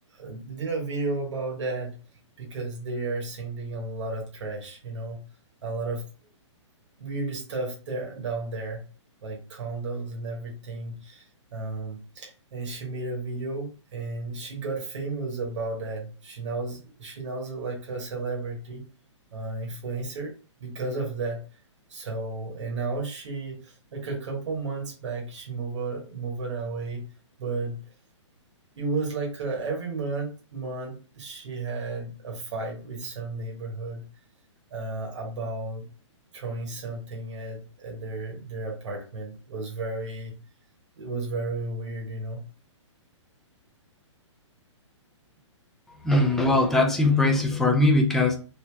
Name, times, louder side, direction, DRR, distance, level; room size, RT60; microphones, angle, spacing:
voice 1, 0.1-2.0 2.4-5.2 5.6-6.0 7.0-8.8 9.2-18.8 19.3-20.3 20.6-21.4 21.9-27.0 27.4-27.8 28.8-34.0 34.7-35.8 36.3-40.3 41.0-42.4, right 3 dB, 65° right, -1 dB, 1.2 m, -33 dB
voice 2, 46.0-48.4, left 2 dB, ahead, 1 dB, 0.4 m, -21 dB
3.3 x 2.7 x 2.2 m, 0.37 s
hypercardioid pair, 140°, 16 cm